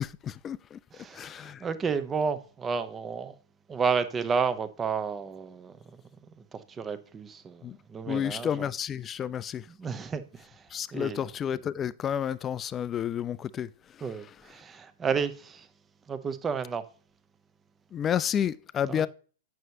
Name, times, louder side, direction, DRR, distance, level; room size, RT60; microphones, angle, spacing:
voice 1, 0.0-0.8 1.1-1.6 7.6-7.8 8.1-9.6 10.7-13.7 17.9-19.1, left 9 dB, 25° left, 0.3 m, -30 dB
voice 2, 0.9-3.4 3.7-6.0 6.4-8.7 9.7-11.2 14.0-15.7 16.1-16.8 18.9-19.1, right 5 dB, 20° right, 0.7 m, -32 dB
9.1 x 6.3 x 2.8 m
figure-of-eight pair, 105°, 0 cm